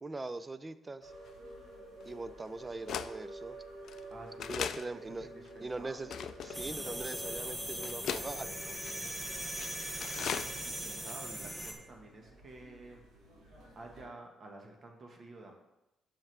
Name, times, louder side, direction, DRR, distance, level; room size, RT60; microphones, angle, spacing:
voice 1, 0.0-1.1 2.1-3.6 4.5-5.3 5.6-8.8, right 3 dB, 25° right, 13 dB, 0.4 m, -41 dB
sound 1, 1.0-14.0, right 1 dB, 85° right, 2.0 m, -50 dB
sound 2, 1.3-1.4 2.1-2.2 2.9-3.1 3.8-4.0 4.4-4.9 5.5-5.6 6.1-6.6 7.3-7.4 7.8-8.3 8.8-9.1 9.5-9.7 10.0-10.5 10.8-10.9 11.1-11.2, left 8 dB, 65° left, 0.3 m, -37 dB
voice 2, 4.1-6.1 10.0-13.0 13.7-15.5, right 2 dB, 45° right, 2 dB, 1.3 m, -51 dB
sound 3, 6.5-11.7, right 1 dB, 5° right, 1.0 m, -40 dB
7.3 x 5.8 x 3.3 m, 0.92 s
cardioid pair, 90°, 0 cm